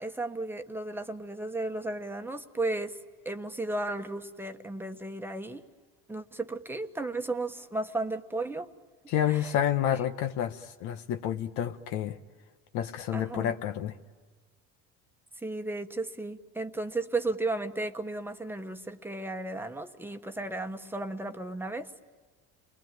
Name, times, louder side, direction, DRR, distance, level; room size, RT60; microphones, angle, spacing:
voice 1, 0.0-3.0 3.2-5.6 6.1-8.7 9.3-9.4 13.1-13.6 15.4-21.9, right 2 dB, 5° right, 6 dB, 1.2 m, -34 dB
voice 2, 9.1-12.2 12.7-13.9, left 10 dB, 70° left, 7 dB, 1.2 m, -29 dB
29.5 x 21.5 x 9.2 m, 1.5 s
cardioid pair, 130°, 30 cm